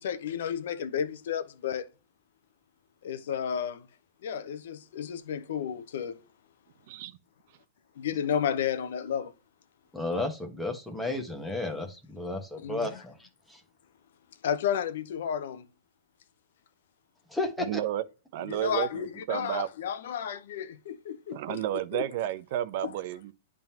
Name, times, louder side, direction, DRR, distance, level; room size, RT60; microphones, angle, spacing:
voice 1, 0.0-1.9 3.0-3.9 4.2-6.2 8.0-9.3 12.6-12.8 14.4-15.7 18.5-21.6 21.9-22.1 22.8-22.9, left 8 dB, 70° left, 0.9 m, -32 dB
voice 2, 6.9-7.2 17.6-18.0 18.3-19.7 21.3-23.3, right 12 dB, 55° right, 0.7 m, -32 dB
voice 3, 9.9-13.6 17.3-17.8, left 2 dB, 5° left, 1.3 m, -33 dB
10.5 x 3.7 x 2.9 m
hypercardioid pair, 145°, 0 cm